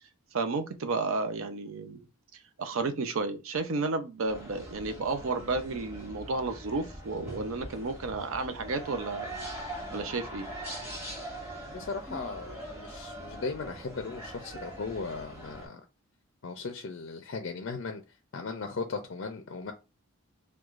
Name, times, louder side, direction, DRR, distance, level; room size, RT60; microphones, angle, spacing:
voice 1, 0.3-2.0 2.6-9.3 9.9-10.5, right 3 dB, 70° right, 0.5 m, -32 dB
sound 1, 4.3-15.7, right 1 dB, 10° right, 1.5 m, -42 dB
voice 2, 11.6-15.8 16.4-18.0 18.3-19.7, left 4 dB, 55° left, 0.4 m, -37 dB
4.6 x 2.2 x 2.4 m
head